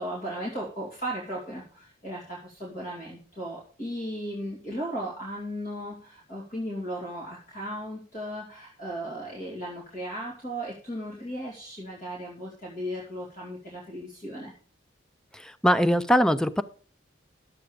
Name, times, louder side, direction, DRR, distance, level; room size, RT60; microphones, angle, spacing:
voice 1, 0.0-14.5, equal, 40° left, -4 dB, 2.7 m, -36 dB
voice 2, 15.3-16.6, equal, 5° left, 12 dB, 0.4 m, -22 dB
11.5 x 7.8 x 5.0 m, 0.43 s
head